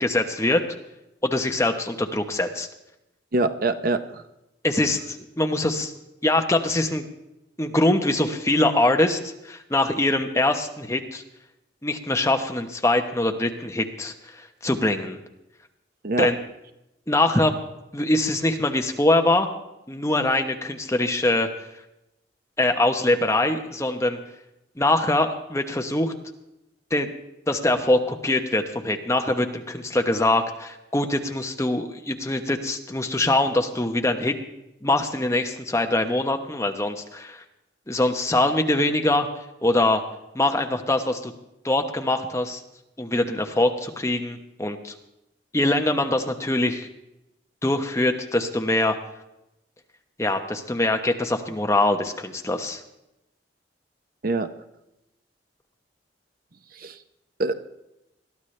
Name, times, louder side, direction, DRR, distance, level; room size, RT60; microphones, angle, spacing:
voice 1, 0.0-0.6 1.2-2.7 4.6-5.9 6.2-7.0 7.6-9.2 9.4-11.2 11.8-15.2 16.2-16.3 17.1-17.5 17.9-19.5 19.9-21.5 22.6-24.2 24.8-26.1 26.9-27.1 27.5-34.3 34.8-37.4 37.9-39.3 39.6-40.0 40.3-41.3 41.6-42.6 43.0-44.9 45.5-46.9 47.6-48.9 50.2-52.8, left 2 dB, 15° left, 5 dB, 1.0 m, -23 dB
voice 2, 3.3-4.2 16.0-16.3 54.2-54.5 56.7-57.0 57.4-57.5, right 2 dB, 50° right, 10 dB, 0.8 m, -24 dB
21.5 x 13.5 x 3.3 m, 0.89 s
head